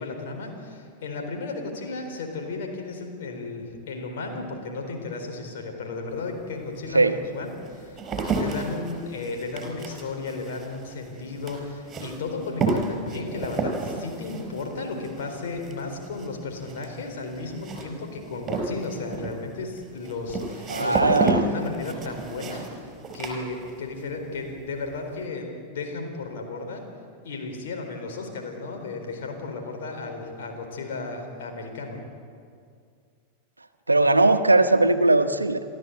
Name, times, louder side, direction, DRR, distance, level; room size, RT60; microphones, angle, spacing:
voice 1, 0.0-8.0 8.4-22.9 23.1-26.8 27.2-32.0, left 3 dB, 55° left, 3 dB, 4.2 m, -34 dB
sound 1, 6.1-6.2 6.9-24.1 24.4-25.0, right 3 dB, 20° right, 4.8 m, -31 dB
voice 2, 20.7-21.4 33.9-35.6, right 2 dB, 80° right, 9 dB, 1.0 m, -19 dB
29.0 x 13.0 x 8.2 m, 2.2 s
figure-of-eight pair, 90°, 0 cm